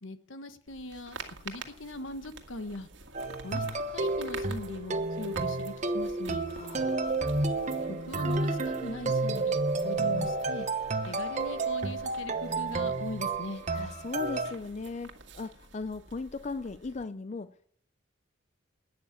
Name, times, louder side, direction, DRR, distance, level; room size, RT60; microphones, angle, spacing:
voice 1, 0.0-1.2 1.4-2.9 3.4-6.4 7.9-10.7 11.1-13.6, left 1 dB, 75° left, 10 dB, 1.3 m, -41 dB
sound 1, 0.7-17.0, right 4 dB, 65° right, 1.8 m, -49 dB
sound 2, 3.1-14.5, right 3 dB, 35° right, 1.1 m, -31 dB
voice 2, 6.6-7.1 13.7-17.7, left 3 dB, 35° left, 13 dB, 0.4 m, -38 dB
12.0 x 9.4 x 8.3 m, 0.63 s
head